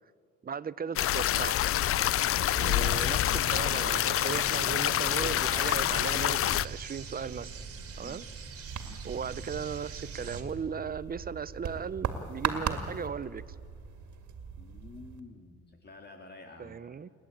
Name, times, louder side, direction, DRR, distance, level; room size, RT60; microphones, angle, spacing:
voice 1, 0.4-1.6 2.5-7.5 8.0-8.3 9.0-13.4 16.6-17.1, right 6 dB, 30° right, 18 dB, 0.7 m, -37 dB
sound 1, 1.0-6.7, left 13 dB, 50° left, 0.4 m, -27 dB
sound 2, 2.5-10.4, right 5 dB, 50° right, 2.4 m, -42 dB
sound 3, 8.7-15.2, right 7 dB, 70° right, 2.2 m, -38 dB
voice 2, 14.6-16.8, left 3 dB, 35° left, 3 dB, 2.2 m, -50 dB
29.0 x 11.0 x 8.9 m, 2.4 s
cardioid pair, 90°, 30 cm